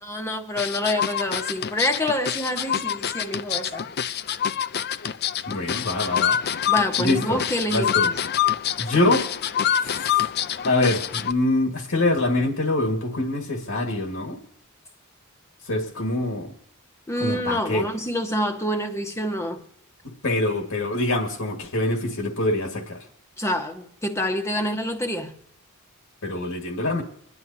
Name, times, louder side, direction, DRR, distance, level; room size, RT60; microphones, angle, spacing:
voice 1, 0.0-3.9 6.7-8.2 17.1-19.6 23.4-25.3, left 1 dB, 15° left, 1.3 m, -27 dB
sound 1, 0.6-11.3, left 9 dB, 45° left, 0.5 m, -26 dB
voice 2, 5.5-6.4 7.0-7.4 7.7-8.1 8.8-9.3 9.8-10.3 10.6-14.4 15.7-16.5 17.2-17.9 20.2-23.0 26.2-27.0, left 2 dB, 70° left, 1.8 m, -24 dB
26.0 x 11.0 x 2.8 m
head